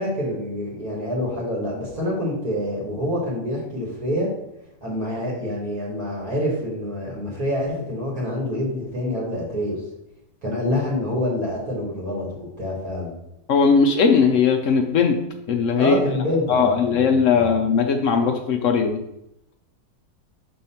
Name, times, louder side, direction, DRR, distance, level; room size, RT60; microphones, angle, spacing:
voice 1, 0.0-4.3 4.8-9.8 10.4-13.2 15.8-17.5, left 1 dB, 55° right, -5 dB, 2.1 m, -26 dB
voice 2, 13.5-15.2 15.5-16.0 16.5-19.0, left 5 dB, 70° left, 4 dB, 0.7 m, -19 dB
5.4 x 3.7 x 5.6 m, 0.86 s
omnidirectional pair, 1.8 m